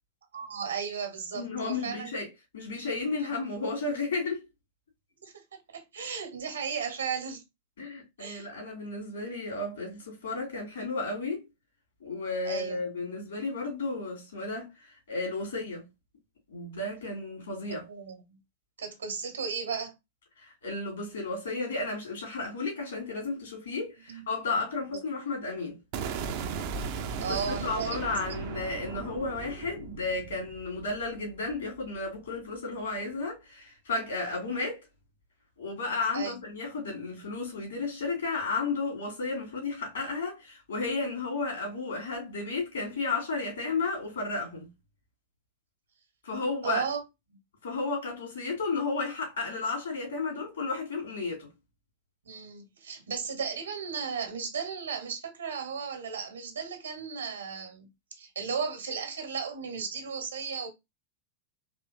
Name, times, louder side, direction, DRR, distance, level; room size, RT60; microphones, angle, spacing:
voice 1, 0.3-2.1 3.2-3.5 5.2-7.4 7.8-7.9 8.2-8.5 12.4-12.8 17.7-18.4 18.8-19.9 24.1-24.3 27.2-28.0 28.3-28.4 36.1-36.4 46.6-47.0 52.2-60.7, right 6 dB, 70° right, 1.2 m, -35 dB
voice 2, 1.3-2.3 2.5-4.4 7.8-11.4 12.0-15.8 16.5-17.9 20.4-25.8 27.3-34.8 35.6-44.7 46.2-46.8 47.6-51.5, left 3 dB, 65° left, 2.6 m, -33 dB
sound 1, 25.9-32.0, right 5 dB, 45° right, 0.6 m, -37 dB
4.3 x 3.1 x 2.5 m
figure-of-eight pair, 90°, 0 cm